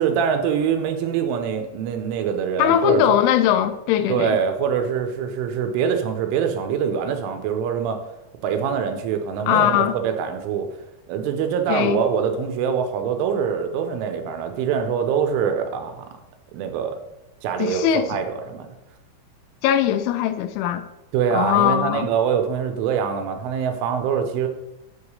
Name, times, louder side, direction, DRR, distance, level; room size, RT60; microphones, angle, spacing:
voice 1, 0.0-3.2 4.1-8.0 8.4-10.7 11.1-16.1 16.5-17.0 17.4-18.7 21.1-24.5, right 7 dB, 90° right, 3.3 m, -24 dB
voice 2, 2.6-4.4 9.5-10.0 11.7-12.0 17.6-18.2 19.6-20.9 21.3-22.1, left 11 dB, 80° left, 3.0 m, -20 dB
7.9 x 4.9 x 6.9 m
omnidirectional pair, 5.7 m